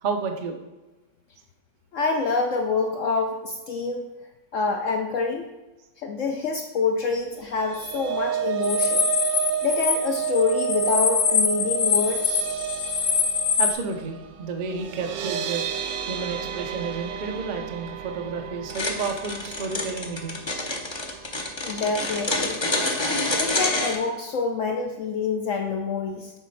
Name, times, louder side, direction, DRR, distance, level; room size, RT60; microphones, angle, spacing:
voice 1, 0.0-0.6 13.6-15.6 16.1-20.4, right 4 dB, 60° right, 4 dB, 0.5 m, -31 dB
voice 2, 1.9-4.1 4.5-5.5 6.0-9.1 9.6-12.4 21.6-22.6 23.4-26.3, left 4 dB, 75° left, 4 dB, 0.7 m, -26 dB
sound 1, 7.4-21.6 22.0-22.2 22.5-22.6, right 10 dB, 85° right, 1.4 m, -32 dB
sound 2, 8.6-13.7, left 5 dB, 50° left, 1.0 m, -24 dB
sound 3, 18.7-24.0, left 2 dB, 35° left, 0.4 m, -27 dB
7.1 x 4.2 x 5.6 m, 1.1 s
omnidirectional pair, 1.9 m